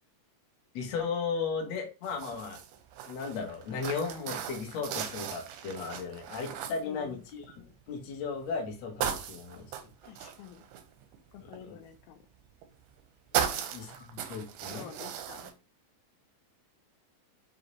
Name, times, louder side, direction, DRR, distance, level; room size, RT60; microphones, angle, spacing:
voice 1, 0.7-2.6 3.1-7.5 7.9-9.7 11.4-11.8 13.3-13.9 14.1-14.9, left 5 dB, 65° left, 1 dB, 1.7 m, -36 dB
sound 1, 2.0-7.7 8.2-8.6 9.0-11.6 12.6-13.0 13.3-15.5, right 9 dB, 85° right, 2.5 m, -37 dB
voice 2, 6.8-7.2 10.0-10.7 11.3-12.3 13.4-13.7 14.7-15.5, left 9 dB, 80° left, 7 dB, 2.5 m, -49 dB
6.3 x 2.7 x 3.0 m, 0.32 s
omnidirectional pair, 4.4 m